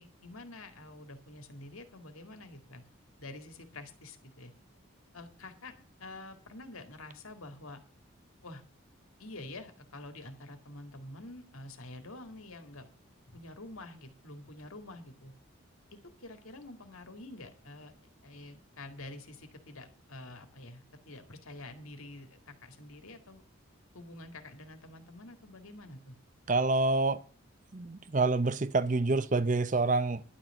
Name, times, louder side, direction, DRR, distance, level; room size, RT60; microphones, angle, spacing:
voice 1, 0.0-2.8 3.2-4.5 5.1-7.8 8.4-8.6 9.2-12.9 13.3-15.3 16.2-17.9 18.2-23.4 23.9-26.2, left 2 dB, 90° left, 2.2 m, -47 dB
voice 2, 26.5-27.2 27.7-30.2, right 3 dB, 35° right, 0.6 m, -27 dB
11.5 x 6.1 x 8.9 m
head